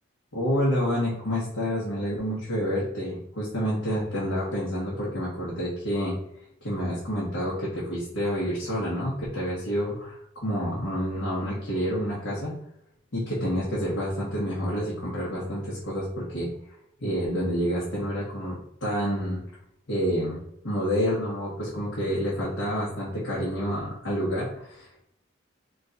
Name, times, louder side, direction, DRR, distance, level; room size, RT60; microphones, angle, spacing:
voice 1, 0.3-6.1 6.6-10.2 10.4-12.5 13.1-16.5 17.0-19.4 19.9-20.4 20.6-25.0, equal, 80° left, -7 dB, 1.4 m, -28 dB
3.7 x 2.5 x 4.0 m, 0.74 s
head